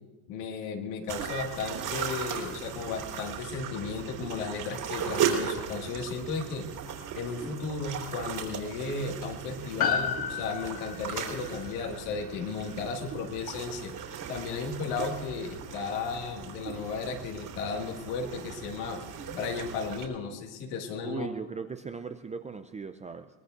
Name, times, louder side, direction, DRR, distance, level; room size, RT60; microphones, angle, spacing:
voice 1, 0.3-6.7 7.1-13.9 14.3-19.0 19.3-21.3, left 4 dB, 70° left, 3 dB, 2.2 m, -34 dB
sound 1, 1.1-20.0, right 8 dB, 50° right, 3.5 m, -37 dB
Piano, 9.8-14.4 14.6-14.7, left 7 dB, 50° left, 2.0 m, -34 dB
voice 2, 21.0-23.3, right 5 dB, 15° right, 8 dB, 0.4 m, -38 dB
22.5 x 19.5 x 2.6 m, 1.2 s
hypercardioid pair, 90°, 49 cm